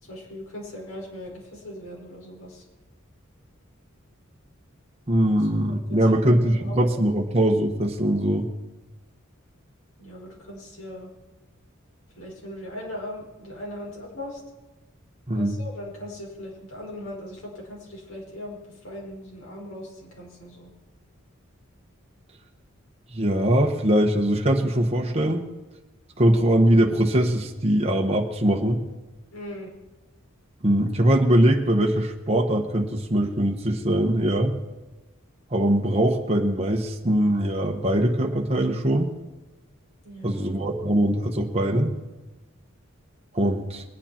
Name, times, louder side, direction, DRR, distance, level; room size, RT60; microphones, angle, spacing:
voice 1, 0.0-2.6 5.5-6.2 6.6-6.9 10.0-11.1 12.1-14.4 15.3-20.7 29.3-29.7 40.0-40.6, left 1 dB, 75° left, -2 dB, 5.2 m, -39 dB
voice 2, 5.1-8.5 15.3-15.6 23.1-25.4 26.2-28.8 30.6-34.6 35.5-39.1 40.2-41.9 43.3-43.8, right 1 dB, 30° right, 1 dB, 1.0 m, -22 dB
21.0 x 9.9 x 4.4 m, 1.1 s
head